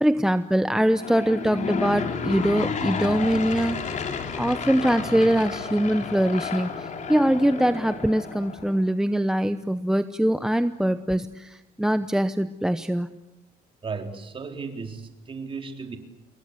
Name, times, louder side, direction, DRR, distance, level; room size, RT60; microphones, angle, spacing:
voice 1, 0.0-3.9 4.4-13.1, right 1 dB, 5° right, 11 dB, 0.9 m, -23 dB
Aircraft / Engine, 0.8-8.8, left 5 dB, 45° left, 3.6 m, -31 dB
voice 2, 13.8-16.0, right 4 dB, 30° right, 5 dB, 3.9 m, -35 dB
28.0 x 22.5 x 8.3 m, 0.97 s
cardioid pair, 110°, 17 cm